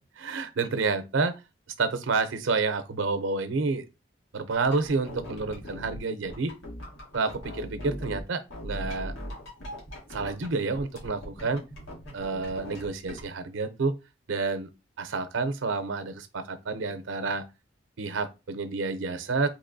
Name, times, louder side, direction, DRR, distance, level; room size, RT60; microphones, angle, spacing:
voice 1, 0.2-1.3 1.8-3.8 4.3-6.5 7.1-9.1 10.1-11.6 12.1-14.0 14.3-14.7 15.0-17.4 18.0-19.5, right 4 dB, 80° right, 0.6 m, -29 dB
sound 1, 4.5-8.2 8.5-10.5 10.7-13.2, equal, 85° left, 1.6 m, -40 dB
4.0 x 3.0 x 2.6 m
head